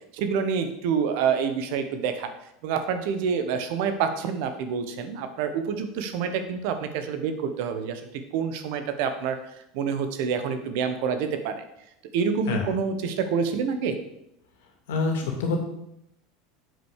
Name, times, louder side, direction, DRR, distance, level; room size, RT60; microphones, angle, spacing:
voice 1, 0.1-2.3 2.6-8.0 8.3-9.4 9.7-11.6 12.1-14.0, right 6 dB, 65° right, 8 dB, 1.2 m, -27 dB
voice 2, 14.9-15.6, left 3 dB, 75° left, 3 dB, 2.3 m, -26 dB
7.7 x 5.3 x 6.6 m, 0.80 s
hypercardioid pair, 95°, 0 cm